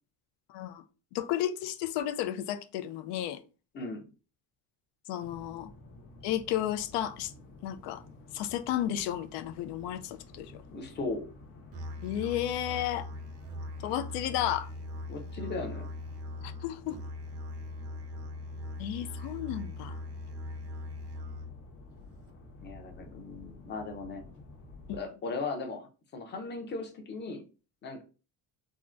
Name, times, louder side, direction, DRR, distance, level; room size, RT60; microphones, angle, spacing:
voice 1, 0.5-0.8 1.1-3.4 5.1-5.7 6.2-7.3 7.6-8.0 8.3-10.5 12.0-13.1 13.8-14.7 16.4-17.0 18.8-20.0 24.9-25.0, left 11 dB, 90° left, 0.5 m, -33 dB
voice 2, 3.7-4.1 10.7-11.2 15.1-15.9 22.6-24.2 24.9-27.4 27.8-28.0, left 3 dB, 25° left, 0.6 m, -37 dB
sound 1, 5.2-25.0, left 2 dB, 55° left, 1.1 m, -52 dB
Musical instrument, 11.7-21.7, left 1 dB, 40° right, 0.4 m, -41 dB
3.7 x 2.1 x 2.4 m
cardioid pair, 155°, 40 cm